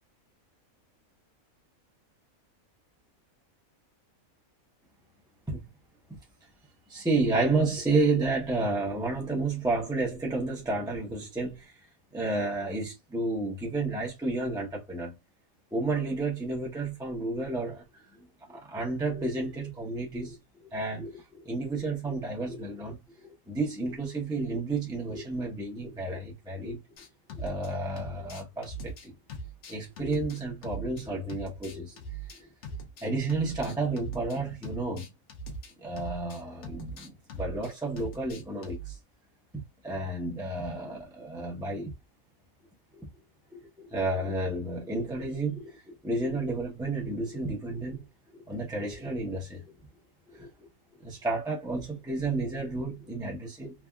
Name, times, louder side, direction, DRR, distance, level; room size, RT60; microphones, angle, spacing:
voice 1, 6.9-11.7 12.1-15.1 15.7-17.8 18.5-20.4 20.7-23.0 23.2-26.8 27.3-29.1 29.7-32.0 32.4-32.8 33.0-35.1 35.8-39.0 39.5-41.9 42.9-43.1 43.5-48.0 48.5-49.6 50.3-50.5 51.0-53.7, right 2 dB, 5° right, 0.4 m, -31 dB
sound 1, 27.0-27.7 28.0-31.0 31.3-34.4 34.6-38.9, right 2 dB, 60° left, 0.9 m, -41 dB
3.3 x 2.3 x 2.2 m
omnidirectional pair, 1.5 m